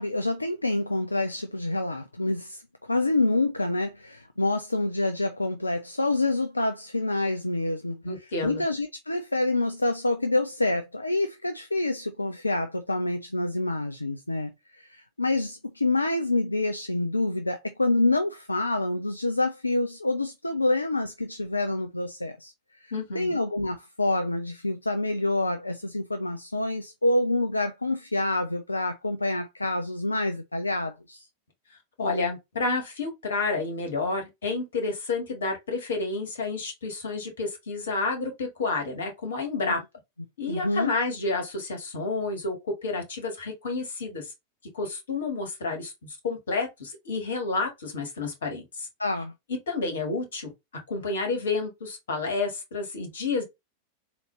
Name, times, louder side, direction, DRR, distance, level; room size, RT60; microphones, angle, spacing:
voice 1, 0.0-8.0 8.4-22.5 22.8-31.3 39.6-39.8 40.5-40.9 49.0-49.3, left 2 dB, 85° left, 0.4 m, -27 dB
voice 2, 8.0-8.6 22.9-23.3 32.0-39.8 40.4-44.3 44.7-48.9 49.5-50.5 50.9-53.4, left 3 dB, 65° left, 1.7 m, -30 dB
4.1 x 2.9 x 3.1 m
figure-of-eight pair, 90°, 0 cm